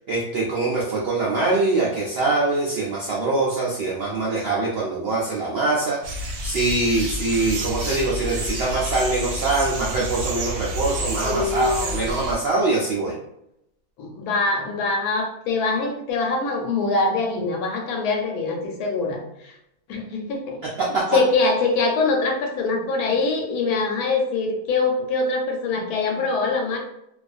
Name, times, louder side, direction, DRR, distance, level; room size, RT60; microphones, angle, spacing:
voice 1, 0.1-13.1 20.8-21.0, right 3 dB, 75° right, -5 dB, 0.5 m, -23 dB
sound 1, 6.0-12.4, right 1 dB, 90° right, 1.2 m, -29 dB
voice 2, 11.2-12.1 14.0-19.5 19.9-20.6 21.1-26.8, left 3 dB, 80° left, 1 dB, 1.1 m, -23 dB
2.4 x 2.4 x 2.4 m, 0.80 s
omnidirectional pair, 1.6 m